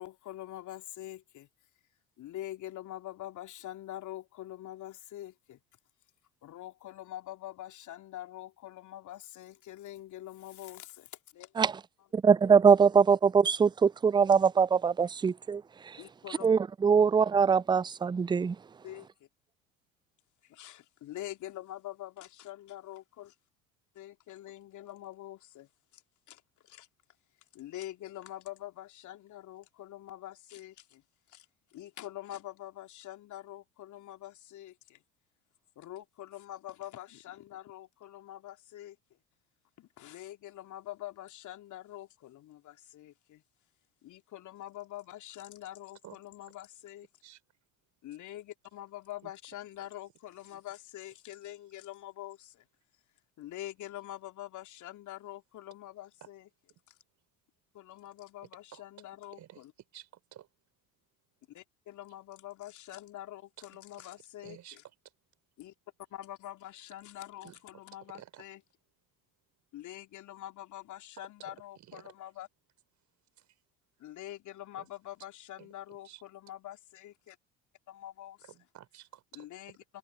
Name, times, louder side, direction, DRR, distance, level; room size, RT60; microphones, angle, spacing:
voice 1, 0.0-1.5 2.2-5.6 6.4-11.5 16.0-16.5 17.0-17.1 18.8-19.1 20.4-23.3 23.9-26.0 26.3-26.9 27.5-31.4 31.7-35.0 35.7-39.0 39.8-43.4 44.0-47.1 48.0-52.6 53.4-56.5 57.7-59.7 61.5-64.8 65.6-65.7 66.1-68.6 69.7-72.5 74.0-77.4 77.9-78.5 79.3-80.0, left 13 dB, 45° left, 3.2 m, -45 dB
voice 2, 12.1-16.0 16.4-18.6, right 6 dB, 10° right, 0.6 m, -23 dB
voice 3, 59.9-60.5 64.4-64.8 67.4-67.6 68.1-68.4 71.4-71.5 71.9-72.1 74.8-74.9 75.6-75.7 76.0-76.2 78.5-79.4, right 12 dB, 45° right, 4.1 m, -51 dB
figure-of-eight pair, 65°, 41 cm